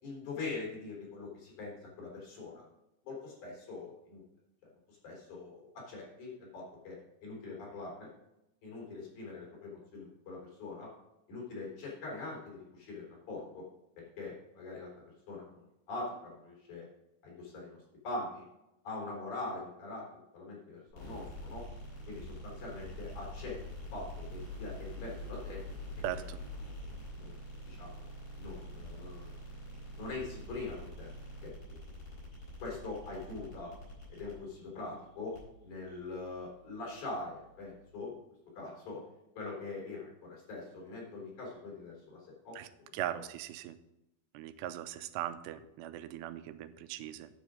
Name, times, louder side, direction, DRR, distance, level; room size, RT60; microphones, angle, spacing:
voice 1, 0.0-2.6 3.0-4.2 4.9-8.1 8.6-10.9 11.3-13.6 14.0-14.9 15.3-16.8 17.2-18.5 18.8-20.1 20.3-21.7 22.1-23.6 23.9-25.6 27.1-27.4 27.6-28.0 28.4-29.3 30.0-31.1 31.4-31.6 32.6-33.7 34.1-35.4 35.6-38.1 38.5-39.0 39.3-42.6 42.9-43.2, left 3 dB, 45° left, -2 dB, 4.8 m, -43 dB
sound 1, 20.9-37.9, left 1 dB, 30° left, 5.0 m, -46 dB
voice 2, 26.0-26.4 42.6-42.7 42.9-43.8 44.3-47.3, right 12 dB, 85° right, 12 dB, 2.7 m, -39 dB
10.0 x 6.8 x 5.1 m, 0.89 s
omnidirectional pair, 4.8 m